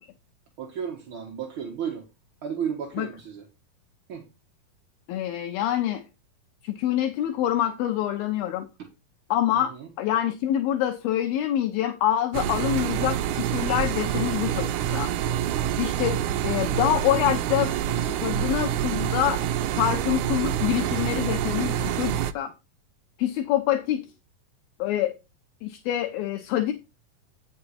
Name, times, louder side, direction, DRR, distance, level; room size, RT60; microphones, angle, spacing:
voice 1, 0.6-2.0 2.4-3.4 4.1-4.3 9.5-9.9, right 7 dB, 50° right, 1.7 m, -33 dB
voice 2, 5.1-6.0 6.6-8.7 9.3-15.1 15.8-17.7 18.0-19.4 19.7-22.5 23.2-24.1 24.8-25.1 25.6-26.7, left 12 dB, 80° left, 2.7 m, -26 dB
sound 1, 12.3-22.3, right 10 dB, 85° right, 1.7 m, -27 dB
9.2 x 6.6 x 4.2 m
omnidirectional pair, 4.2 m